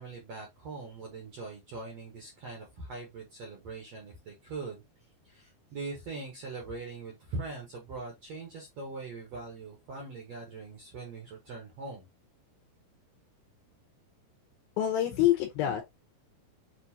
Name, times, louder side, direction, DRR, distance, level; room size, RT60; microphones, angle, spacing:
voice 1, 0.0-4.8 5.2-12.1, right 3 dB, 60° right, 1.7 m, -41 dB
voice 2, 14.8-15.8, left 12 dB, 75° left, 2.5 m, -26 dB
6.8 x 2.5 x 2.7 m
omnidirectional pair, 4.5 m